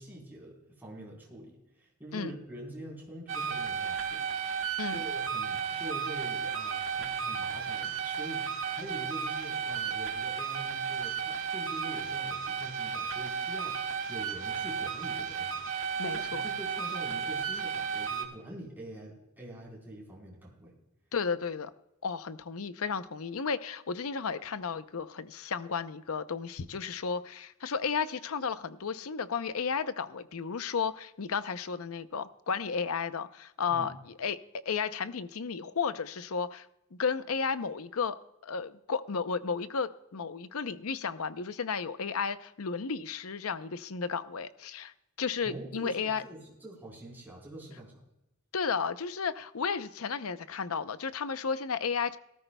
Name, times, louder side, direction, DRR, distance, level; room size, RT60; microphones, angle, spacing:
voice 1, 0.0-4.3 4.9-15.7 16.0-20.7 33.7-34.0 45.4-47.9, right 1 dB, 10° right, 4.0 m, -45 dB
sound 1, 3.3-18.2, right 6 dB, 65° right, 1.8 m, -33 dB
voice 2, 16.0-16.4 21.1-21.7 22.0-33.9 34.2-38.2 38.4-46.2 48.5-52.2, left 5 dB, 75° left, 0.7 m, -33 dB
18.5 x 13.0 x 2.2 m
head